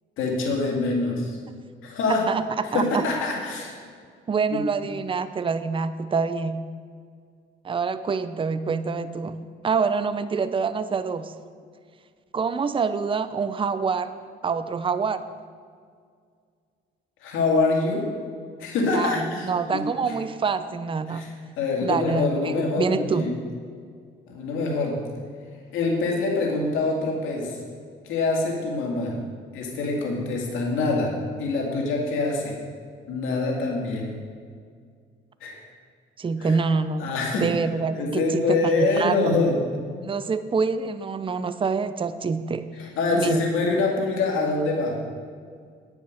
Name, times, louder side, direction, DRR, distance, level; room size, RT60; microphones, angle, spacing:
voice 1, 0.2-1.4 1.8-2.2 2.7-3.8 4.5-4.6 17.2-18.1 18.6-20.2 21.1-21.3 21.6-23.3 24.3-24.9 25.7-27.6 28.0-29.1 29.5-31.1 31.4-32.6 33.1-34.1 35.4-35.5 36.4-36.6 37.0-37.5 37.9-39.6 42.8-44.9, left 3 dB, 90° left, -1 dB, 2.2 m, -25 dB
voice 2, 2.1-3.0 4.3-6.6 7.6-9.4 9.6-11.3 12.3-14.1 14.4-15.2 18.9-21.3 21.8-23.2 36.2-39.4 40.0-42.7 43.1-43.4, right 5 dB, 25° right, 12 dB, 0.5 m, -26 dB
9.6 x 7.1 x 6.4 m, 2.1 s
cardioid pair, 90°, 20 cm